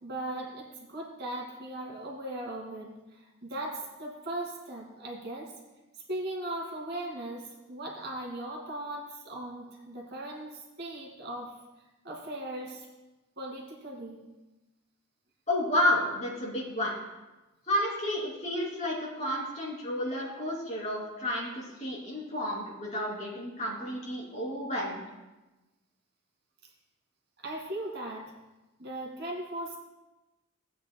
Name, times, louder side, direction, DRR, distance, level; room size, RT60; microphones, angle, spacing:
voice 1, 0.0-5.5 5.9-11.5 12.0-12.9 13.4-14.2 23.6-23.8 27.4-28.3 28.8-29.8, right 1 dB, 50° right, -1 dB, 1.9 m, -38 dB
voice 2, 15.5-16.9 17.7-25.0, left 1 dB, 35° left, -5 dB, 2.8 m, -31 dB
16.5 x 8.6 x 2.2 m, 1.1 s
head